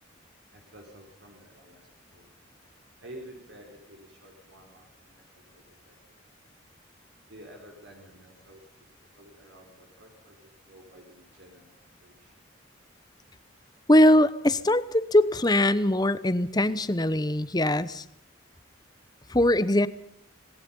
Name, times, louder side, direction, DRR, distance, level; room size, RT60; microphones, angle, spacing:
voice 1, 0.5-2.3 3.0-6.0 6.2-6.4 7.3-8.9 9.1-12.3, right 1 dB, 65° right, 1 dB, 4.7 m, -51 dB
voice 2, 13.9-18.0 19.3-19.9, left 1 dB, 20° left, 15 dB, 0.9 m, -21 dB
26.5 x 19.5 x 5.5 m, 0.67 s
head